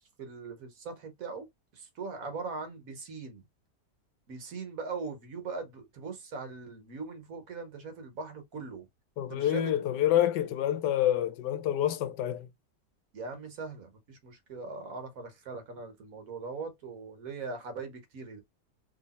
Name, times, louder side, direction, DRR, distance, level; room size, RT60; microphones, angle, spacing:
voice 1, 0.0-1.5 1.8-3.4 4.3-8.8 9.3-9.7 13.1-18.4, right 4 dB, 60° right, 1.4 m, -40 dB
voice 2, 9.2-12.5, left 11 dB, 85° left, 1.3 m, -27 dB
3.3 x 2.9 x 4.1 m
omnidirectional pair, 1.8 m